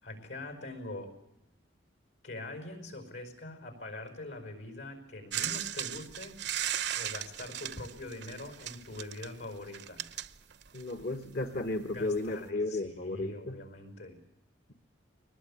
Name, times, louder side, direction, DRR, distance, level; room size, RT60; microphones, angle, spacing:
voice 1, 0.0-1.1 2.2-6.4 7.0-10.1 11.9-14.2, left 2 dB, 80° left, 6 dB, 5.5 m, -43 dB
sound 1, 5.3-11.0 12.0-12.1, right 11 dB, 65° right, 0.8 m, -37 dB
voice 2, 10.7-13.6, left 2 dB, 55° left, 7 dB, 1.2 m, -34 dB
22.5 x 20.0 x 8.6 m, 0.86 s
head